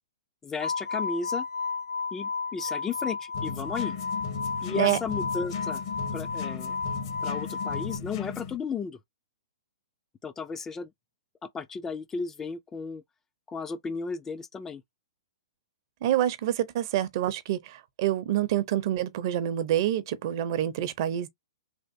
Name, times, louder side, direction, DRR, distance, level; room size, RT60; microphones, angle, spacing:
voice 1, 0.4-1.5 2.1-3.9 4.6-5.8 6.1-6.8 7.2-9.0 10.2-10.9 11.5-13.0 13.5-14.8, left 5 dB, 15° left, 0.3 m, -34 dB
sound 1, 0.6-8.0, left 4 dB, 85° left, 0.5 m, -33 dB
sound 2, 3.3-8.6, left 6 dB, 50° left, 0.8 m, -36 dB
voice 2, 16.0-21.3, right 12 dB, 50° right, 0.6 m, -27 dB
3.4 x 2.4 x 2.6 m
hypercardioid pair, 140°, 3 cm